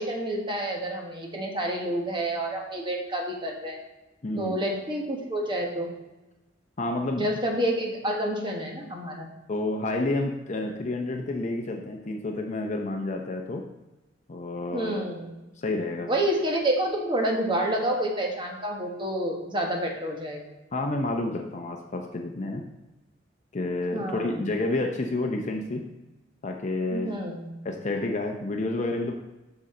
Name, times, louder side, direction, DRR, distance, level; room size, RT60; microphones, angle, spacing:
voice 1, 0.0-3.8 4.4-5.9 7.2-9.3 14.7-15.2 16.1-20.5 23.9-24.5 26.9-27.5, right 1 dB, 25° right, 0 dB, 1.3 m, -28 dB
voice 2, 4.2-4.6 6.8-7.3 9.5-13.7 14.3-15.0 15.6-16.1 20.7-22.6 23.5-25.9 26.4-27.1 27.6-29.1, left 2 dB, 40° left, 2 dB, 0.6 m, -29 dB
7.1 x 6.5 x 3.8 m, 1.0 s
head